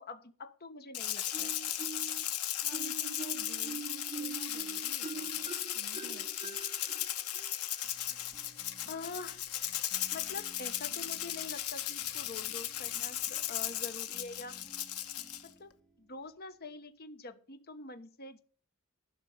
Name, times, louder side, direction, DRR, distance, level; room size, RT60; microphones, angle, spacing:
voice 1, 0.0-1.5 8.9-9.4 10.1-14.6 15.4-15.7 16.0-18.4, left 3 dB, 45° left, 1.1 m, -45 dB
Rattle (instrument), 0.9-15.5, left 12 dB, 85° left, 1.1 m, -36 dB
Marimba xylophone, 1.3-2.2 2.7-8.2, right 4 dB, 25° right, 1.0 m, -44 dB
voice 2, 2.6-5.5 5.7-6.6, right 2 dB, 80° right, 1.6 m, -51 dB
sound 1, 7.8-16.6, equal, ahead, 2.2 m, -59 dB
11.5 x 5.6 x 8.1 m
head